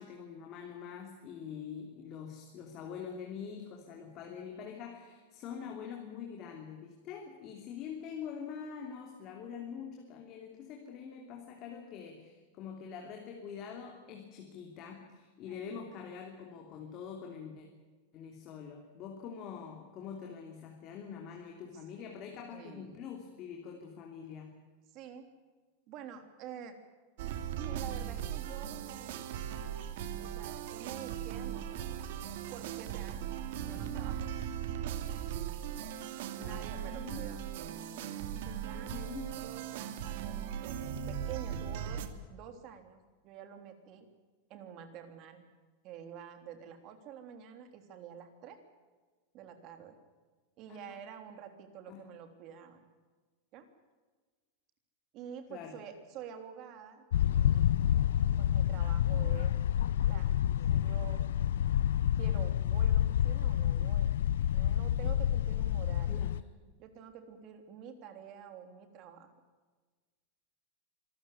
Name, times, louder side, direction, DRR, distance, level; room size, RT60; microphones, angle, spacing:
voice 1, 0.0-17.7 18.1-24.5 36.4-37.3 38.7-39.4 50.7-51.0 51.9-52.1 55.5-55.8 66.1-66.4, left 7 dB, 35° left, 2 dB, 3.0 m, -45 dB
voice 2, 15.5-15.8 22.5-23.0 24.9-25.3 25.9-26.8 27.2-29.2 30.2-32.0 32.5-33.3 33.6-34.3 36.3-37.4 38.1-39.0 39.4-42.0 42.3-44.1 44.5-45.4 45.8-48.6 49.3-49.9 50.6-52.8 53.5-53.7 55.1-57.8 58.4-59.6 60.1-60.4 60.7-61.2 62.2-64.1 64.5-66.2 66.8-69.3, right 8 dB, 35° right, 7 dB, 3.4 m, -48 dB
sound 1, 27.2-42.1, right 9 dB, 60° right, 2.3 m, -38 dB
sound 2, 57.1-66.4, left 10 dB, 90° left, 0.6 m, -28 dB
26.0 x 13.5 x 9.7 m, 1.4 s
supercardioid pair, 165°, 0 cm